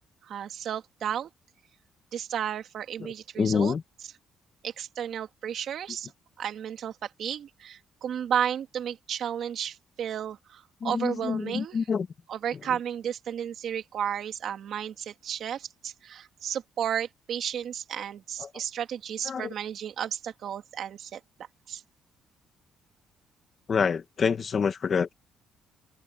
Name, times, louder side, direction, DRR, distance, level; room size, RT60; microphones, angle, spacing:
voice 1, 0.2-1.3 2.1-3.7 4.6-6.1 6.4-11.8 12.3-21.2 21.7-21.8, right 9 dB, 50° right, 2.5 m, -33 dB
voice 2, 3.0-3.8 10.8-12.1 18.4-18.5 19.2-19.5 23.7-25.1, left 6 dB, 30° left, 2.0 m, -27 dB
open air
cardioid pair, 170°, 0 cm